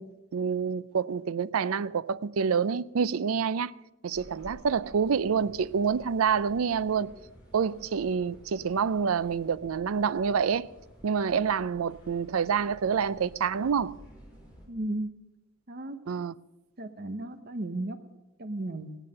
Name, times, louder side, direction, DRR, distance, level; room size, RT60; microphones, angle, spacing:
voice 1, 0.0-3.7 4.0-7.1 7.5-10.7 11.0-14.0 16.1-16.3, right 6 dB, 80° right, 0.4 m, -27 dB
sound 1, 4.1-14.7, equal, 5° right, 5.5 m, -53 dB
voice 2, 14.7-15.1 15.7-16.0 16.8-18.0 18.4-19.0, right 1 dB, 45° right, 0.9 m, -34 dB
16.0 x 10.5 x 6.5 m
head